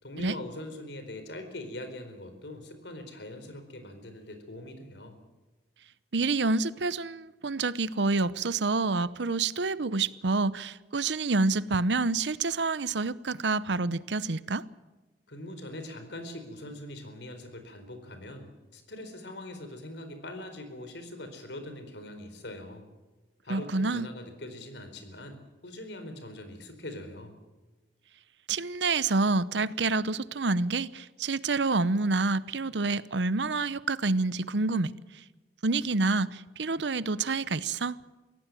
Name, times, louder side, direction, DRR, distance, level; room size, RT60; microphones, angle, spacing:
voice 1, 0.0-5.2 15.3-22.8 23.4-27.3, left 1 dB, 80° left, 4.4 m, -42 dB
voice 2, 6.1-14.6 23.5-24.1 28.5-34.9 35.6-38.0, right 3 dB, 85° right, 0.8 m, -28 dB
24.0 x 17.0 x 7.7 m
head